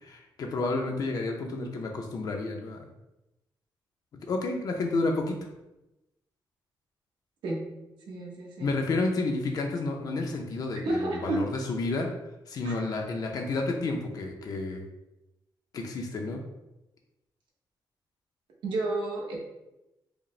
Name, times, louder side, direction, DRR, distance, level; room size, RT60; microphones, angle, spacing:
voice 1, 0.0-2.8 4.3-5.3 8.6-12.1 12.5-14.8 15.7-16.4, left 3 dB, 50° left, 2 dB, 0.5 m, -30 dB
voice 2, 8.1-8.7 10.8-11.4 12.6-12.7 18.6-19.4, right 2 dB, 80° right, -2 dB, 1.0 m, -30 dB
4.9 x 2.0 x 3.1 m, 0.94 s
wide cardioid pair, 145°, 8 cm